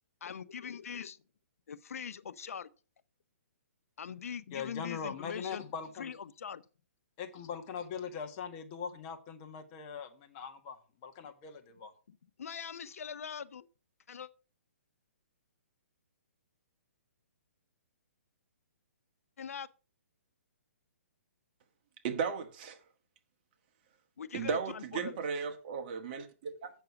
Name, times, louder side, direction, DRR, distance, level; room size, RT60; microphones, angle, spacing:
voice 1, 0.2-1.2 1.7-2.7 4.0-5.6 6.0-6.6 12.1-13.7 14.1-14.3 19.4-19.7 24.2-25.2, left 7 dB, 75° left, 0.7 m, -42 dB
voice 2, 4.5-6.1 7.2-11.9, left 6 dB, 30° left, 1.5 m, -41 dB
voice 3, 22.0-22.8 24.3-26.7, right 6 dB, 35° right, 1.5 m, -35 dB
8.2 x 6.6 x 5.8 m
hypercardioid pair, 155°, 8 cm